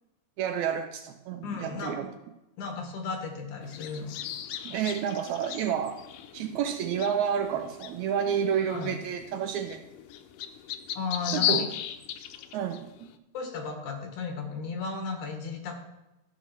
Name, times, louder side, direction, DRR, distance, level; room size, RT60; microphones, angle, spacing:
voice 1, 0.4-2.1 4.6-6.0 6.3-9.8 11.3-11.7 12.5-13.1, right 8 dB, 80° right, 7 dB, 1.8 m, -30 dB
voice 2, 1.4-2.0 2.6-4.2 8.7-8.9 10.9-11.7 13.3-15.7, left 4 dB, 70° left, 3 dB, 3.1 m, -34 dB
sound 1, 3.6-13.1, left 11 dB, 85° left, 2.3 m, -36 dB
13.5 x 5.5 x 5.9 m, 0.94 s
omnidirectional pair, 3.7 m